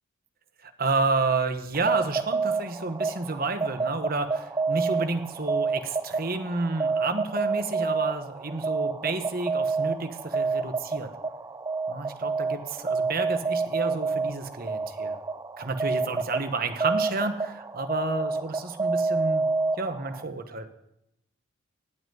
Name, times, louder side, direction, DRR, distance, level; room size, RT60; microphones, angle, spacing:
voice 1, 0.6-11.1 11.9-15.2 15.6-19.5 19.8-20.7, right 3 dB, 45° right, 8 dB, 1.2 m, -30 dB
sound 1, 1.7-20.2, right 4 dB, 15° right, 0.4 m, -29 dB
17.0 x 5.9 x 9.2 m, 0.85 s
head